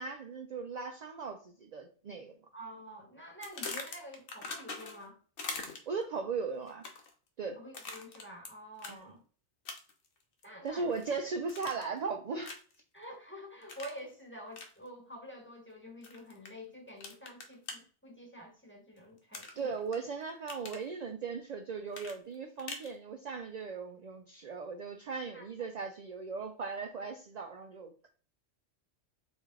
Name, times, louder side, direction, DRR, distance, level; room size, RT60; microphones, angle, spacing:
voice 1, 0.0-2.4 5.9-6.8 7.4-7.6 8.9-9.0 10.6-12.5 19.6-28.1, right 4 dB, 60° right, 0.4 m, -38 dB
voice 2, 2.5-5.2 7.6-9.2 10.4-10.9 12.9-19.7 25.3-25.5, equal, 10° left, 1.1 m, -48 dB
sound 1, 3.4-5.1 5.4-6.0 6.7-7.1 7.7-8.5 8.8-9.0 9.7-10.1 10.4-11.1 11.5-12.0 12.4-12.8 13.7-14.0 14.5-14.7 16.0-16.5 17.0-17.8 19.3-20.0 20.3-20.9 21.9-22.9, left 3 dB, 55° left, 0.9 m, -42 dB
4.1 x 3.1 x 3.6 m
omnidirectional pair, 1.2 m